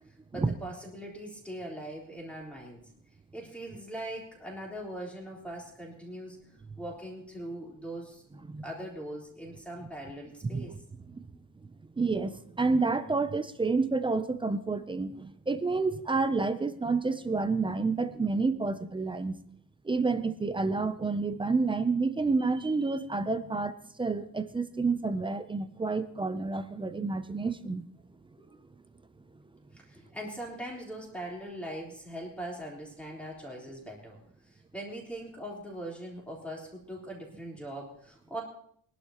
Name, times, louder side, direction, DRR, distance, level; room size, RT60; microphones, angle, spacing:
voice 1, 0.3-2.8 3.3-6.4 6.8-10.7 28.4-28.5 29.7-38.4, right 1 dB, 5° left, -3 dB, 3.6 m, -41 dB
voice 2, 12.0-19.3 19.9-27.8, right 3 dB, 15° right, 11 dB, 0.4 m, -29 dB
23.5 x 11.5 x 2.9 m, 0.65 s
cardioid pair, 180°, 40 cm